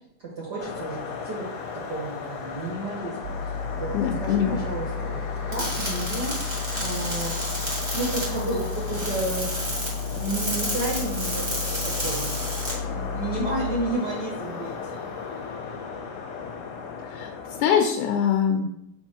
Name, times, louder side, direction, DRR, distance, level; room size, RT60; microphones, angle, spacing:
voice 1, 0.2-1.4 1.9-3.3 3.7-3.9 4.2-5.2 5.5-7.4 7.9-9.5 10.1-12.4 12.7-14.8 15.1-15.2, right 2 dB, 55° right, -4 dB, 1.2 m, -31 dB
sound 1, 0.6-17.6, left 5 dB, 65° left, 1.8 m, -36 dB
sound 2, 3.2-13.8, left 5 dB, 80° right, 2.0 m, -33 dB
voice 2, 3.9-4.6 17.1-17.3 17.6-18.6, left 8 dB, 80° left, 1 dB, 2.1 m, -22 dB
sound 3, 5.5-12.7, right 1 dB, 25° right, 1.4 m, -32 dB
7.2 x 4.3 x 4.5 m, 0.79 s
omnidirectional pair, 3.8 m